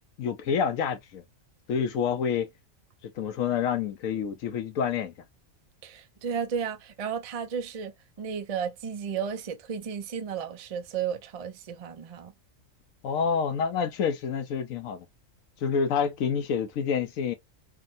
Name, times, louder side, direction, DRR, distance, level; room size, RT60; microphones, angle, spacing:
voice 1, 0.2-1.2 1.7-2.5 3.2-5.1 13.0-15.1 15.6-17.3, left 7 dB, 80° left, 1.1 m, -28 dB
voice 2, 5.8-12.3, right 7 dB, 55° right, 0.4 m, -33 dB
3.5 x 2.2 x 2.5 m
omnidirectional pair, 1.4 m